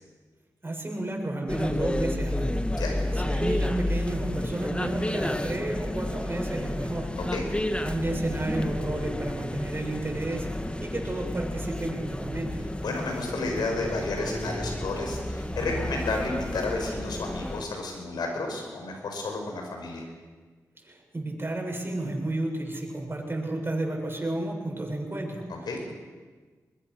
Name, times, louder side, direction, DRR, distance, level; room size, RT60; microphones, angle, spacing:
voice 1, 0.6-2.6 3.2-7.1 7.8-10.5 10.8-12.6 20.8-25.9, right 2 dB, 30° right, 1 dB, 7.0 m, -32 dB
sound 1, 1.5-17.7, left 1 dB, 15° left, 1.8 m, -31 dB
voice 2, 12.8-20.1 25.5-25.8, left 3 dB, 85° left, 2 dB, 5.6 m, -32 dB
22.5 x 22.0 x 6.4 m, 1.4 s
cardioid pair, 45°, 7 cm